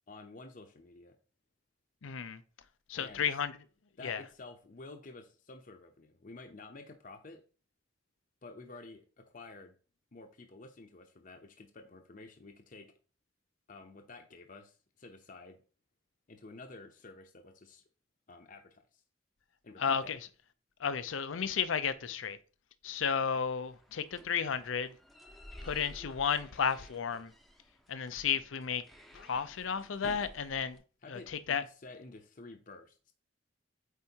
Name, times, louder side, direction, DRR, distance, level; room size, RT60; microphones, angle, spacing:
voice 1, 0.1-1.1 3.0-3.3 4.0-7.4 8.4-9.7 10.1-12.9 13.7-15.6 16.3-17.8 18.3-19.0 19.6-20.1 31.0-33.1, left 3 dB, 45° left, 0.7 m, -51 dB
voice 2, 2.0-2.4 2.9-3.6 4.0-4.2 19.8-20.2 20.8-22.4 22.8-24.9 25.6-27.3 27.9-28.8 29.1-30.8 31.1-31.6, left 7 dB, 85° left, 0.6 m, -33 dB
sound 1, 23.2-30.8, equal, ahead, 0.6 m, -53 dB
8.2 x 4.4 x 2.8 m
head